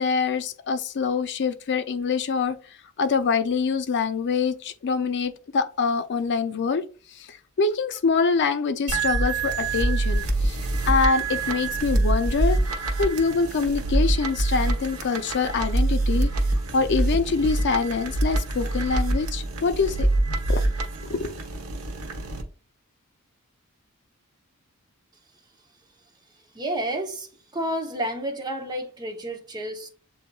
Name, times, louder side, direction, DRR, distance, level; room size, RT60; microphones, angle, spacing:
voice 1, 0.0-2.6 3.0-6.8 7.1-10.6 10.9-12.6 13.0-16.3 16.7-20.6 21.0-21.3, left 5 dB, 55° left, 0.4 m, -25 dB
sound 1, 8.9-22.4, right 2 dB, 75° right, 1.1 m, -25 dB
voice 2, 26.5-29.9, right 1 dB, 20° right, 0.7 m, -30 dB
7.8 x 2.8 x 2.2 m
head